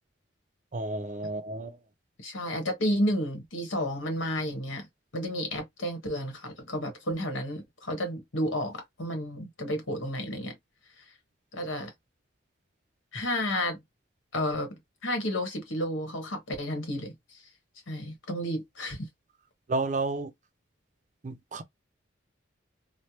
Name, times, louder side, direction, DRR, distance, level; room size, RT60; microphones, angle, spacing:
voice 1, 0.7-1.8 19.7-20.3 21.2-21.6, right 2 dB, 40° right, 0.5 m, -31 dB
voice 2, 2.2-4.9 5.1-10.5 11.5-11.9 13.1-13.8 14.3-17.1 17.9-19.1, equal, 80° left, 1.2 m, -31 dB
3.2 x 2.1 x 2.8 m
head